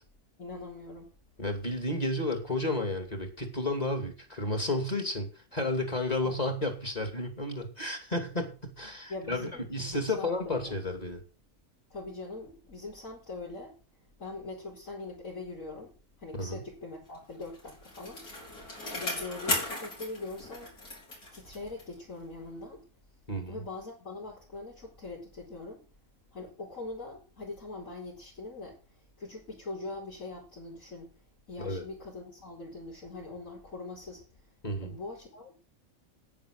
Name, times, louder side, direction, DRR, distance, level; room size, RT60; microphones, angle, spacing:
voice 1, 0.4-1.1 6.2-6.4 9.1-10.8 11.9-13.7 14.2-15.9 16.2-18.2 18.9-20.7 21.3-22.8 23.5-25.8 26.3-28.8 29.2-31.1 31.5-34.2 34.8-35.7, left 3 dB, 60° left, -6 dB, 5.1 m, -42 dB
voice 2, 1.4-11.2 16.4-16.6 23.3-23.6 31.6-31.8 34.6-34.9, left 2 dB, 25° left, 5 dB, 2.8 m, -32 dB
Bicycle, 17.2-22.1 22.4-22.5, left 1 dB, 85° left, 5.7 m, -37 dB
10.5 x 9.6 x 6.6 m, 0.36 s
omnidirectional pair, 1.6 m